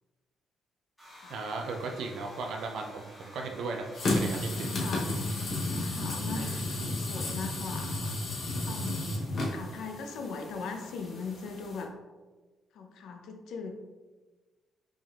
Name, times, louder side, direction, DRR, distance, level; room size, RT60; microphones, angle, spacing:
sound 1, 1.0-7.1, equal, 10° left, 1.5 m, -52 dB
voice 1, 1.3-4.7 6.4-6.8, right 3 dB, 65° right, 2 dB, 0.4 m, -37 dB
sound 2, 3.9-11.8, left 2 dB, 40° left, 0.9 m, -33 dB
voice 2, 4.6-5.1 5.7-8.1 8.7-9.2 9.5-11.9 12.7-13.8, left 4 dB, 75° left, 4 dB, 0.6 m, -39 dB
5.1 x 3.5 x 2.4 m, 1.3 s
cardioid pair, 175°, 0 cm